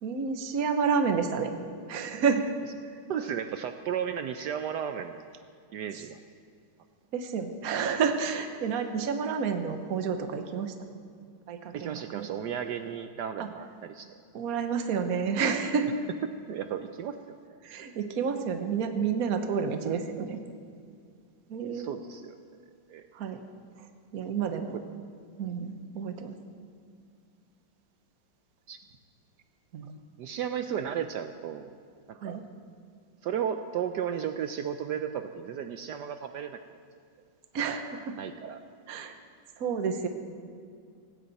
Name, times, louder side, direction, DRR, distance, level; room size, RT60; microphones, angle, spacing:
voice 1, 0.0-1.5 1.9-2.5 7.1-10.7 11.5-12.3 13.4-13.5 14.3-15.9 17.6-20.4 21.5-21.9 23.1-23.4 23.8-23.9 24.1-24.7 25.4-26.3 29.7-30.0 32.2-32.4 37.5-38.1 38.9-39.2 39.6-40.1, right 6 dB, 50° right, 7 dB, 1.3 m, -30 dB
voice 2, 3.1-5.3 5.7-6.2 11.7-14.1 16.5-17.4 21.7-22.3 22.9-23.1 24.7-24.8 28.7-28.8 30.2-31.7 32.1-32.4 33.2-36.6 38.2-38.6, right 8 dB, 70° right, 8 dB, 1.0 m, -34 dB
18.5 x 16.5 x 4.1 m, 2.2 s
omnidirectional pair, 2.2 m